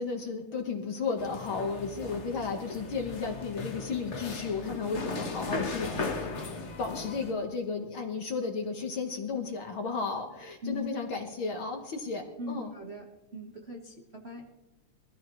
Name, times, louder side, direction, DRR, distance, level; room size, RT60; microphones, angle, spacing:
voice 1, 0.0-6.3 6.8-12.7, left 4 dB, 50° left, 3 dB, 1.8 m, -34 dB
sound 1, 1.2-7.3, left 3 dB, 75° left, 0.6 m, -37 dB
voice 2, 12.4-13.1 13.3-14.5, left 2 dB, 40° right, 0 dB, 0.9 m, -40 dB
22.5 x 15.0 x 3.1 m, 1.0 s
omnidirectional pair, 3.4 m